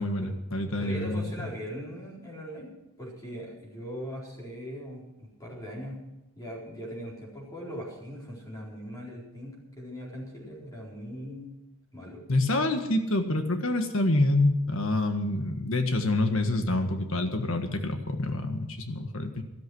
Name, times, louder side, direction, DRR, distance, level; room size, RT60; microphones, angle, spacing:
voice 1, 0.0-1.3 12.3-19.4, left 2 dB, 60° left, 6 dB, 1.6 m, -27 dB
voice 2, 0.8-2.7 3.0-5.1 5.4-6.0 6.4-11.6 11.9-12.2, equal, 15° left, -5 dB, 4.2 m, -40 dB
13.5 x 13.0 x 6.3 m, 0.97 s
head